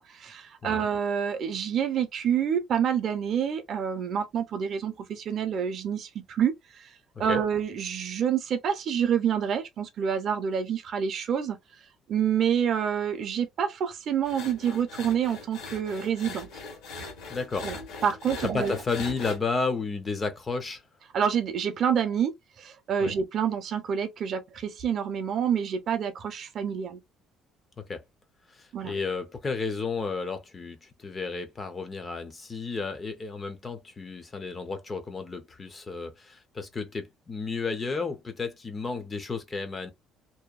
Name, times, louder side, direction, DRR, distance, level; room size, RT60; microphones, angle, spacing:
voice 1, 0.0-6.9 7.2-11.6 12.1-16.5 17.6-17.8 18.0-18.8 21.1-27.0 28.7-28.9, right 8 dB, 40° right, 0.5 m, -28 dB
sound 1, 14.2-19.4, left 3 dB, 85° left, 1.3 m, -40 dB
voice 2, 17.3-17.7 18.4-20.8 23.0-23.1 27.8-28.0 28.5-39.9, left 4 dB, 20° left, 0.4 m, -32 dB
2.7 x 2.1 x 2.3 m
cardioid pair, 175°, 0 cm